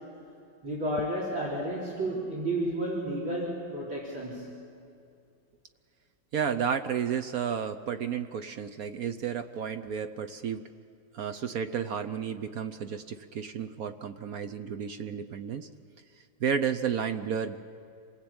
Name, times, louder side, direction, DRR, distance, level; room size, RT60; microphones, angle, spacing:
voice 1, 0.6-4.7, right 1 dB, 80° right, -3 dB, 4.9 m, -32 dB
voice 2, 6.3-10.7 11.1-15.7 16.4-17.6, right 7 dB, 60° right, 9 dB, 1.0 m, -32 dB
27.0 x 19.5 x 8.8 m, 2.5 s
omnidirectional pair, 2.2 m